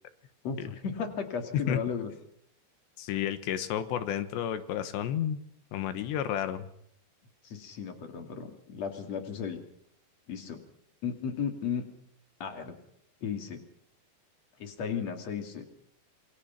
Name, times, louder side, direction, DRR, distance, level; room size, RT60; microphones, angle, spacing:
voice 1, 0.4-2.1 7.4-9.6 10.3-10.6 11.0-11.8 12.4-12.7 13.2-13.6 14.6-15.7, left 6 dB, 45° left, 6 dB, 3.2 m, -35 dB
voice 2, 3.0-5.4 5.7-6.7, left 10 dB, 85° left, 11 dB, 3.5 m, -31 dB
27.5 x 22.0 x 5.9 m, 0.69 s
omnidirectional pair, 5.0 m